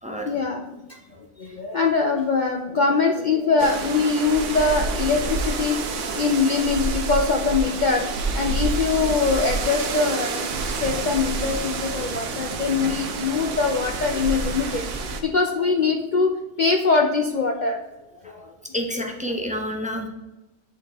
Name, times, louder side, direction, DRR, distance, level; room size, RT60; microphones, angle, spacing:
voice 1, 0.2-17.8 18.2-18.5, left 4 dB, 75° left, 3 dB, 0.4 m, -23 dB
sound 1, 3.6-15.2, right 4 dB, 65° right, 1.0 m, -28 dB
voice 2, 18.7-20.1, equal, 10° right, 2 dB, 0.4 m, -29 dB
8.7 x 3.9 x 3.4 m, 1.0 s
omnidirectional pair, 1.4 m